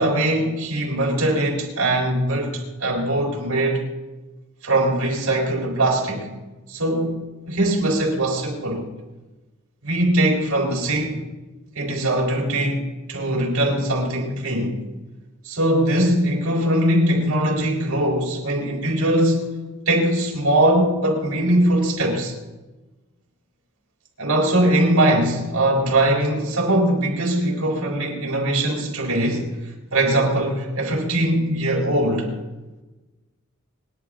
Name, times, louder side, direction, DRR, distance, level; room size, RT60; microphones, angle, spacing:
voice 1, 0.0-3.9 4.6-6.3 6.7-8.8 9.8-11.2 11.7-14.8 15.4-19.5 19.9-22.4 24.2-29.5 29.9-32.3, right 1 dB, 90° right, 4.0 m, -21 dB
27.0 x 10.5 x 3.7 m
head